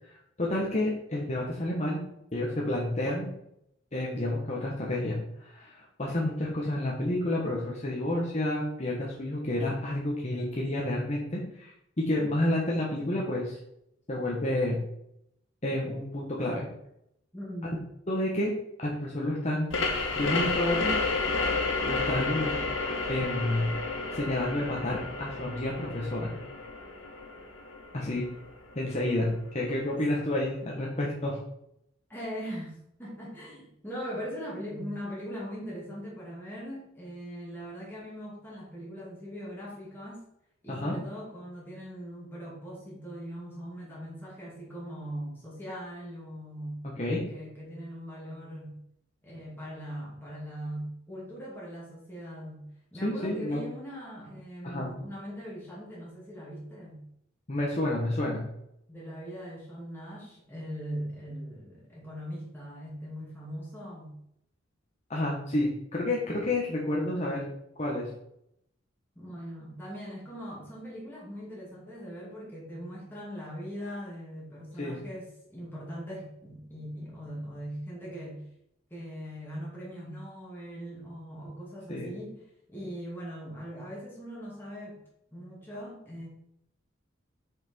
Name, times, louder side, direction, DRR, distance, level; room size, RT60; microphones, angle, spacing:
voice 1, 0.4-2.0 2.3-3.3 3.9-13.6 14.1-14.8 15.6-16.7 18.1-18.5 18.8-19.8 20.1-21.0 21.8-22.6 23.1-23.7 24.1-26.3 27.9-28.3 28.7-31.4 40.7-40.9 47.0-47.2 53.0-53.6 54.6-54.9 57.5-58.4 65.1-67.4 67.8-68.1 74.8-75.0 81.9-82.1, left 1 dB, 35° left, -3 dB, 1.3 m, -30 dB
voice 2, 17.3-17.8 32.1-40.2 40.6-46.8 47.3-48.8 49.2-57.0 58.9-64.1 69.2-78.4 78.9-82.4 82.7-85.0 85.3-86.3, equal, 10° left, -6 dB, 2.4 m, -40 dB
sound 1, 19.7-29.1, left 3 dB, 85° left, 1.5 m, -31 dB
6.4 x 6.0 x 4.5 m, 0.76 s
head